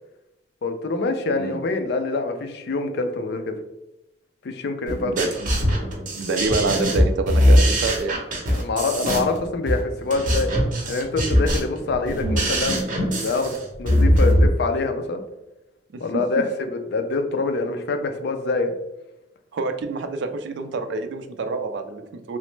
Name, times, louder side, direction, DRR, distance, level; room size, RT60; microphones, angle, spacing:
voice 1, 0.6-3.6 4.4-5.1 8.5-10.5 10.9-13.5 13.8-15.2 16.0-18.7, left 3 dB, 65° left, 6 dB, 0.4 m, -25 dB
sound 1, 4.9-14.5, equal, 50° right, 0.8 m, -21 dB
voice 2, 5.0-5.5 6.1-8.2 15.9-16.2 19.5-22.4, right 3 dB, 70° right, 7 dB, 0.4 m, -27 dB
3.1 x 2.0 x 3.1 m, 0.93 s
head